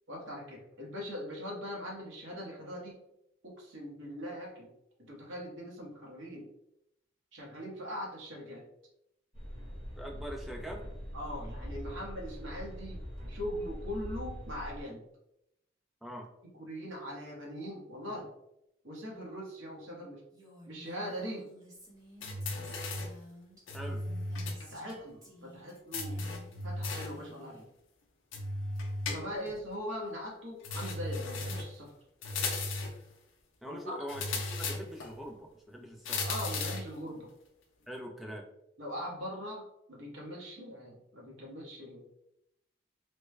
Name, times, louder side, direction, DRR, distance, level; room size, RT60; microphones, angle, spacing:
voice 1, 0.1-2.9 3.4-4.7 5.0-6.5 7.3-8.6 11.1-13.0 13.3-15.0 16.5-18.3 18.8-20.2 20.7-21.5 24.7-26.2 26.6-27.7 29.1-31.9 33.7-34.0 36.2-37.3 38.8-39.6 39.9-42.2, equal, 75° right, -2 dB, 1.1 m, -41 dB
sound 1, 9.3-14.8, equal, 40° right, 1.2 m, -42 dB
voice 2, 10.0-10.8 16.0-16.3 23.7-24.0 33.6-36.2 37.9-38.4, equal, ahead, 0 dB, 0.4 m, -43 dB
Female speech woman speaking, 20.3-24.9 25.2-25.8 26.0-26.7 27.0-27.6, equal, 15° right, 0.8 m, -54 dB
sound 2, 22.2-23.2 23.7-24.6 24.9-25.0 25.9-27.2 28.3-29.6 30.6-31.8 32.2-33.0 34.1-35.1 36.0-36.9, left 2 dB, 80° left, 0.6 m, -36 dB
3.2 x 2.2 x 3.2 m, 0.81 s
head